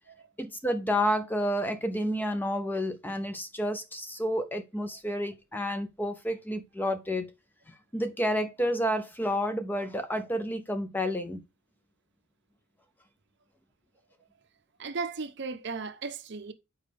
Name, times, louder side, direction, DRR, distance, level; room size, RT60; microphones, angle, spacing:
voice 1, 0.4-7.3 7.7-11.4, equal, 10° left, 0.5 m, -30 dB
voice 2, 14.8-16.5, right 4 dB, 55° right, 0.7 m, -36 dB
7.2 x 4.6 x 3.4 m
head